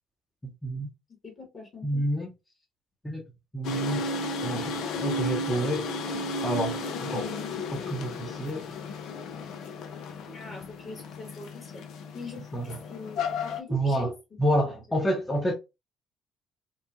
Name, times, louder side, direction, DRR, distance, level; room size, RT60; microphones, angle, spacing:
voice 1, 0.4-0.9 1.8-2.3 3.0-3.2 3.5-4.0 4.4-4.7 5.0-5.8 6.4-7.3 7.7-8.6 12.5-12.7 13.7-14.1 14.4-15.5, right 1 dB, 15° left, 0.8 m, -28 dB
voice 2, 1.2-2.0 10.2-11.9 12.1-14.4, left 2 dB, 40° left, 1.3 m, -43 dB
sound 1, 3.6-13.6, left 2 dB, 65° left, 0.4 m, -33 dB
3.0 x 2.1 x 2.3 m
hypercardioid pair, 50°, 0 cm